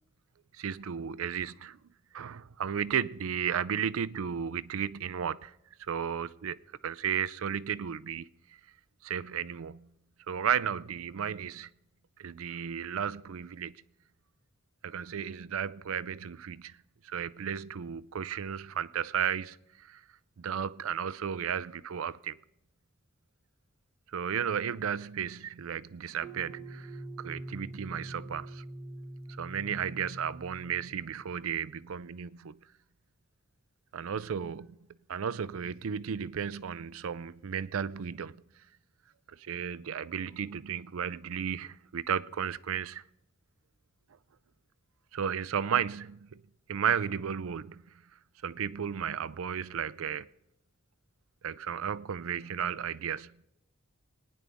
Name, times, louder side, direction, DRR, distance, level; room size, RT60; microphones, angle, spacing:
voice 1, 0.6-1.8 2.1-5.5 5.9-8.3 9.0-9.9 10.3-11.7 12.2-13.8 14.8-16.8 17.0-20.0 20.4-22.4 24.1-26.9 27.2-28.6 29.4-32.6 33.9-34.8 35.1-38.4 39.4-43.0 45.1-46.4 46.7-47.8 48.4-50.3 51.4-53.3, right 8 dB, 70° right, 0.4 m, -34 dB
sound 1, 26.2-31.4, right 1 dB, 15° right, 1.2 m, -44 dB
26.5 x 9.8 x 3.5 m
head